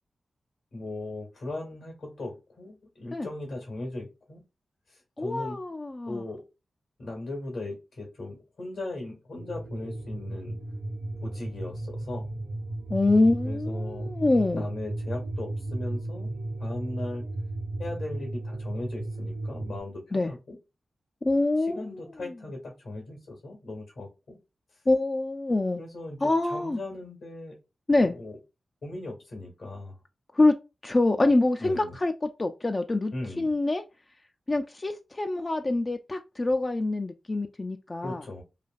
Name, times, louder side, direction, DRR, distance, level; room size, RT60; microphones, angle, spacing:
voice 1, 0.7-4.4 4.9-5.6 6.1-6.4 7.0-10.6 11.2-12.3 13.4-14.1 14.5-16.3 16.6-17.2 17.8-20.6 21.6-24.4 25.8-27.6 28.1-28.4 28.8-30.0 31.6-32.0 33.1-33.5 38.0-38.4, left 2 dB, 80° left, 1.5 m, -38 dB
voice 2, 5.2-6.2 12.9-14.6 20.1-20.3 21.2-21.8 24.9-25.8 26.2-26.8 27.9-28.2 30.3-30.5 30.8-32.1 32.4-33.8 34.5-38.2, left 2 dB, 40° left, 0.4 m, -25 dB
sound 1, 9.4-19.8, right 2 dB, 70° right, 0.9 m, -34 dB
3.2 x 2.3 x 2.4 m
cardioid pair, 45°, 0 cm